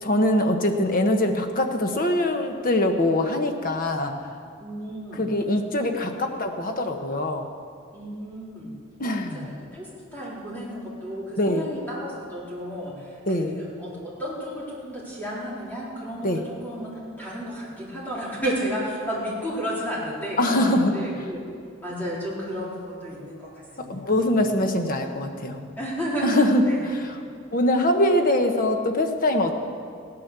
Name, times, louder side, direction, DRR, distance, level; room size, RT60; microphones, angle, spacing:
voice 1, 0.0-4.1 5.1-7.5 9.0-9.5 11.4-11.7 13.3-13.6 16.2-16.4 20.4-20.9 23.9-25.6 26.2-27.1 27.5-29.5, left 1 dB, 45° left, 5 dB, 1.1 m, -23 dB
voice 2, 4.6-5.3 7.9-8.7 9.3-9.9 10.1-21.4 21.8-24.0 25.8-26.9, equal, 10° left, -7 dB, 3.8 m, -32 dB
15.5 x 9.6 x 6.8 m, 2.3 s
head